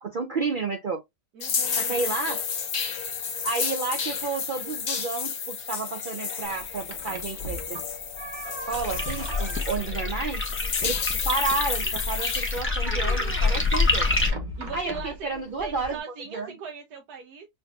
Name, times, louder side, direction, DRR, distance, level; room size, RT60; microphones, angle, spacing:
voice 1, 0.0-1.0 1.8-2.5 3.4-7.8 8.7-10.4 10.8-11.0 11.2-14.1 14.7-16.0 16.3-16.5, right 4 dB, 60° right, 0.5 m, -31 dB
voice 2, 1.3-2.0 14.6-17.5, right 6 dB, 80° right, 1.3 m, -39 dB
sound 1, 1.4-12.6, left 6 dB, 75° left, 1.6 m, -31 dB
sound 2, 6.4-16.0, right 1 dB, 35° right, 1.0 m, -41 dB
sound 3, 8.7-14.3, left 3 dB, 10° left, 0.9 m, -27 dB
6.7 x 2.7 x 2.3 m
omnidirectional pair, 1.6 m